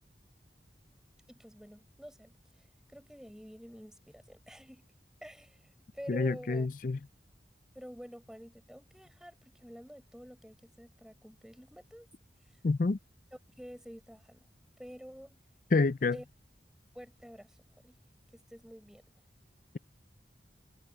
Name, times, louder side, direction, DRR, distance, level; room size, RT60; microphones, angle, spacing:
voice 1, 1.3-4.9 5.2-6.7 7.7-12.1 13.6-14.5 14.8-15.4 16.1-16.3 16.9-17.6 17.8-18.0 18.3-19.0, equal, 5° right, 4.5 m, -49 dB
voice 2, 6.1-7.0 12.6-13.0 15.7-16.2, left 3 dB, 50° left, 0.5 m, -28 dB
head